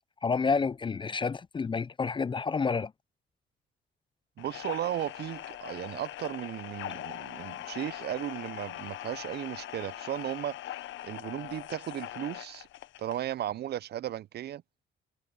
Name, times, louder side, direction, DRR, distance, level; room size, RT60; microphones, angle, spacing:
voice 1, 0.2-2.9, left 5 dB, 25° left, 0.4 m, -29 dB
sound 1, 4.4-13.3, left 14 dB, 75° left, 0.7 m, -41 dB
voice 2, 4.4-10.6 11.0-12.7 13.0-14.6, right 12 dB, 55° right, 0.4 m, -35 dB
cardioid pair, 90°, 20 cm